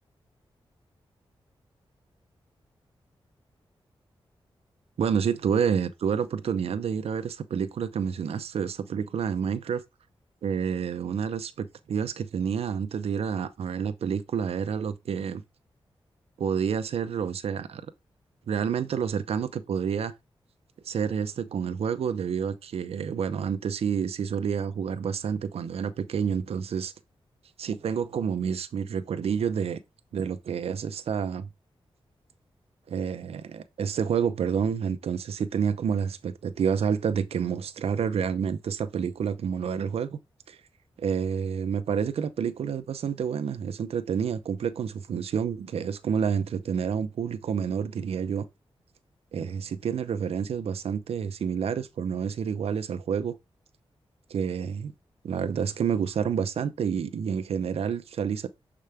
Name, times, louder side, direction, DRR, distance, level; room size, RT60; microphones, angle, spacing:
voice 1, 5.0-9.8 10.4-15.4 16.4-17.8 18.5-20.1 20.8-26.9 27.6-29.8 30.1-31.5 32.9-40.2 40.5-40.6 41.0-48.4 49.3-53.3 54.3-54.9 55.2-58.5, right 7 dB, 85° right, 0.7 m, -29 dB
6.7 x 4.9 x 3.4 m
cardioid pair, 70°, 10 cm